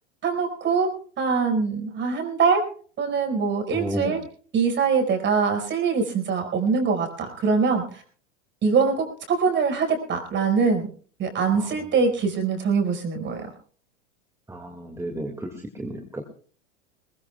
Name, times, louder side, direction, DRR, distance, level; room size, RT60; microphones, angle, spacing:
voice 1, 0.2-0.9 1.2-2.6 3.0-4.2 4.5-8.0 8.6-10.9 11.2-13.5, right 5 dB, 30° right, 5 dB, 5.2 m, -23 dB
voice 2, 3.7-4.1 14.5-15.3 15.8-16.2, right 1 dB, 5° right, 2 dB, 2.2 m, -31 dB
21.5 x 21.5 x 2.4 m, 0.44 s
hypercardioid pair, 110°, 36 cm